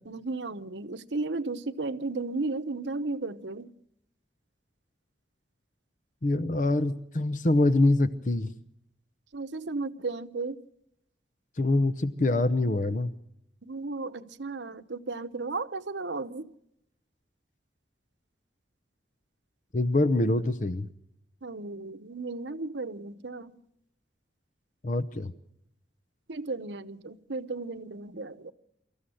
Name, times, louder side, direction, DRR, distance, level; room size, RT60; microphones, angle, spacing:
voice 1, 0.1-3.7 9.3-10.6 13.6-16.5 21.4-23.6 26.3-28.5, right 3 dB, 80° right, 0.9 m, -34 dB
voice 2, 6.2-8.5 11.6-13.1 19.7-20.9 24.8-25.3, left 2 dB, 45° left, 0.8 m, -25 dB
24.5 x 14.5 x 7.8 m
head